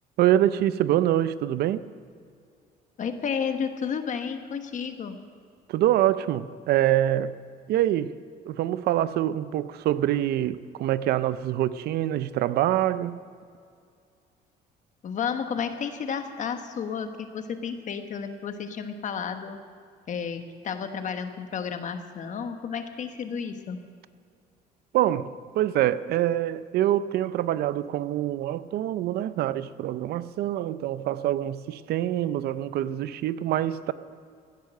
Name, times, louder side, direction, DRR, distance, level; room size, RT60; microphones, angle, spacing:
voice 1, 0.2-1.8 5.7-7.3 7.7-8.2 8.5-13.2 24.9-33.9, right 12 dB, 70° right, 0.5 m, -25 dB
voice 2, 3.0-5.2 15.0-19.6 20.1-23.8, left 6 dB, 45° left, 1.3 m, -32 dB
16.0 x 10.5 x 6.5 m
cardioid pair, 110°, 17 cm